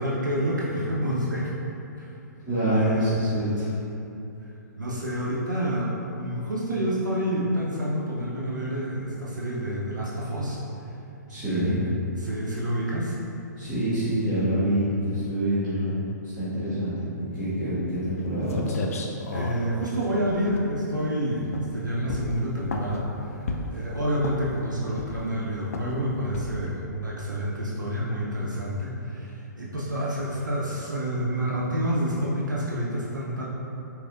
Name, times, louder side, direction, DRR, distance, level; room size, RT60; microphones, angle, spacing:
voice 1, 0.0-1.5 2.0-2.2 2.7-3.1 4.8-10.6 10.8-10.9 11.4-11.8 12.2-13.2 19.3-33.4, equal, 75° right, -5 dB, 0.6 m, -28 dB
voice 2, 2.4-3.7 11.3-11.8 13.6-15.9 16.2-16.9 17.2-18.8, right 1 dB, 5° right, -19 dB, 1.1 m, -26 dB
sound 1, 18.2-18.3 18.5-21.1 21.5-21.8 22.1-23.0 23.5-23.8 24.2-24.6 25.0-25.4 25.7-26.0 26.3-26.7, left 3 dB, 50° left, 0.4 m, -33 dB
4.6 x 2.9 x 2.5 m, 2.9 s
figure-of-eight pair, 120°, 10 cm